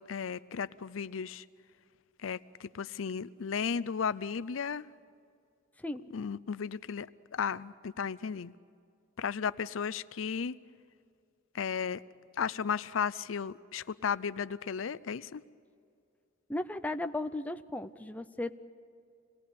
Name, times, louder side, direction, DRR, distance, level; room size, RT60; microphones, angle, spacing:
voice 1, 0.0-1.4 2.2-4.9 6.1-8.5 9.2-10.6 11.5-12.0 12.4-15.4, left 6 dB, 70° left, 16 dB, 0.5 m, -34 dB
voice 2, 16.5-18.6, left 2 dB, 10° left, 8 dB, 0.6 m, -35 dB
26.5 x 19.0 x 8.4 m, 2.4 s
head